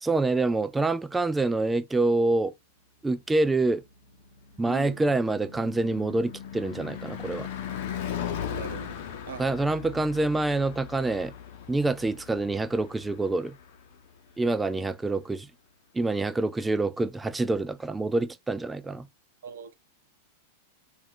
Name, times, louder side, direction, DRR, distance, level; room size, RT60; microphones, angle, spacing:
voice 1, 0.0-2.5 3.0-3.8 4.6-7.5 9.4-11.3 11.7-13.6 14.4-15.5 15.9-19.1, right 2 dB, 10° right, 0.3 m, -26 dB
Car passing by / Truck / Engine, 4.0-14.3, left 8 dB, 60° left, 0.8 m, -38 dB
voice 2, 4.7-5.0 8.5-9.0 9.3-9.4 19.4-19.7, right 9 dB, 80° right, 0.6 m, -40 dB
2.9 x 2.5 x 3.7 m
hypercardioid pair, 115°, 0 cm